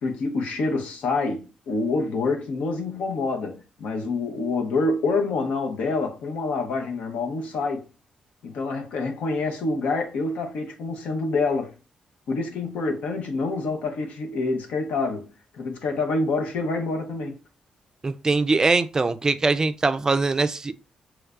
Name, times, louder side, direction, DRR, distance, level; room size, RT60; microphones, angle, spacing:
voice 1, 0.0-7.9 8.4-11.7 12.3-15.3 15.6-17.4, left 3 dB, 85° left, 0.7 m, -27 dB
voice 2, 18.0-20.8, right 3 dB, 30° right, 0.3 m, -22 dB
3.3 x 3.1 x 2.4 m
cardioid pair, 90°, 2 cm